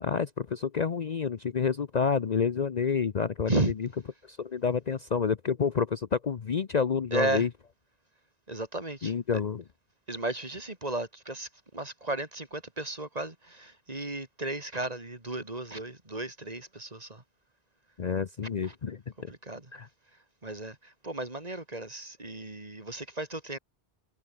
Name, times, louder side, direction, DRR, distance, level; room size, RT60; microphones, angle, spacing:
voice 1, 0.0-3.5 3.8-3.9 4.3-7.5 9.0-9.6 18.0-19.3 19.7-19.9, left 6 dB, 45° left, 0.8 m, -29 dB
voice 2, 7.1-7.4 8.5-9.1 10.1-11.5 11.7-17.2 18.6-18.7 19.3-19.6 20.4-20.7 21.0-23.6, right 2 dB, 40° right, 3.0 m, -34 dB
omnidirectional pair, 1.1 m